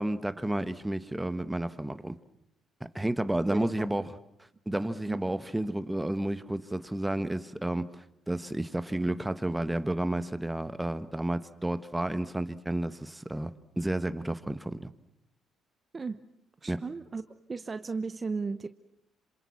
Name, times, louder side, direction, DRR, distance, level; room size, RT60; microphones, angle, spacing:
voice 1, 0.0-2.1 2.9-4.0 4.7-14.9 16.7-16.8, right 1 dB, 10° right, 1.4 m, -31 dB
voice 2, 3.5-3.9 5.1-5.2 15.9-16.2 16.6-17.2 17.5-18.7, right 4 dB, 30° right, 1.0 m, -35 dB
27.0 x 26.5 x 7.2 m
cardioid pair, 85°, 0 cm